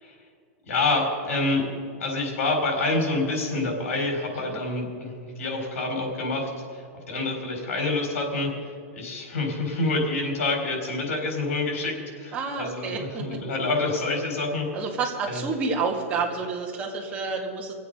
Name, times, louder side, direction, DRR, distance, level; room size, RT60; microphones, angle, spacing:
voice 1, 0.7-1.6 2.0-6.8 7.1-8.5 8.9-14.6 15.3-15.4, left 2 dB, 90° left, 1 dB, 4.4 m, -27 dB
voice 2, 12.3-13.4 14.7-17.7, right 4 dB, 20° right, -1 dB, 1.8 m, -29 dB
24.0 x 8.2 x 5.4 m, 2.2 s
supercardioid pair, 170°, 7 cm